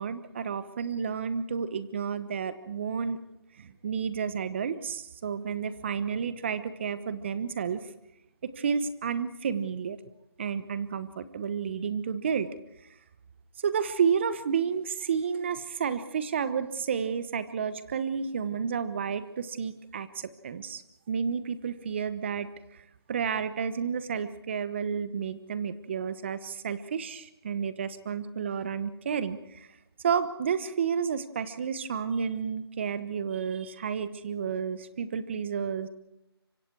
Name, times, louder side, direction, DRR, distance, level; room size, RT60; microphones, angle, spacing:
voice 1, 0.0-3.2 3.6-7.9 8.4-10.0 10.4-12.5 13.6-20.8 21.1-22.5 23.1-29.7 30.0-35.9, right 6 dB, 25° right, 13 dB, 1.1 m, -31 dB
26.0 x 25.0 x 4.7 m, 0.87 s
figure-of-eight pair, 165°, 13 cm